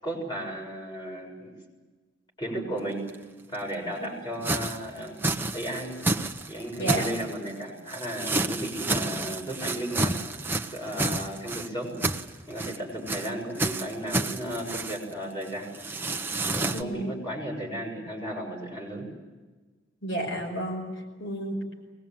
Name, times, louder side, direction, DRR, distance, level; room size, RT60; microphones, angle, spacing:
voice 1, 0.0-1.5 2.4-3.1 3.5-5.2 5.5-5.9 6.5-10.2 10.7-12.0 12.5-15.7 16.5-19.1, right 1 dB, 20° left, 0 dB, 6.9 m, -34 dB
sound 1, 3.1-3.2 3.5-3.6 4.4-7.5 7.9-11.7 12.0-12.8 13.1-13.3 13.6-15.1 15.4-15.5 15.7-16.8, right 2 dB, 10° right, 0.9 m, -30 dB
voice 2, 6.8-7.1 16.7-17.1 20.0-20.9 21.2-21.6, right 1 dB, 65° left, 2 dB, 5.5 m, -31 dB
23.5 x 21.0 x 9.0 m, 1.3 s
head